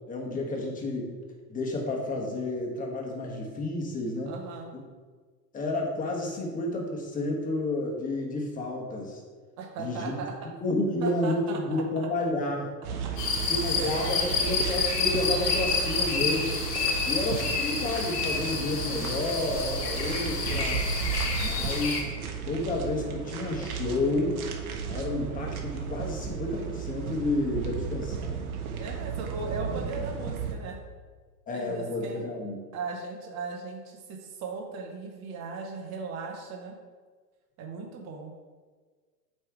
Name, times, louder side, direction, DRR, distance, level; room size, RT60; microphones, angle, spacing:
voice 1, 0.1-1.1 1.5-4.3 4.7-4.8 5.5-9.2 9.8-10.1 10.6-13.0 13.5-16.5 17.0-20.8 21.4-22.1 22.4-24.4 24.9-28.4 31.5-32.6, left 2 dB, 15° left, -1 dB, 1.3 m, -30 dB
voice 2, 4.3-4.7 9.6-10.5 11.0-12.1 13.0-13.1 13.7-14.6 16.8-17.6 28.8-30.8 31.5-32.2 32.7-36.8 37.6-38.3, right 4 dB, 35° right, 1 dB, 0.9 m, -38 dB
sound 1, 12.8-30.5, right 6 dB, 60° right, 1.3 m, -34 dB
sound 2, 13.2-22.0, left 5 dB, 75° left, 1.9 m, -29 dB
8.4 x 3.3 x 4.8 m, 1.5 s
hypercardioid pair, 125°, 49 cm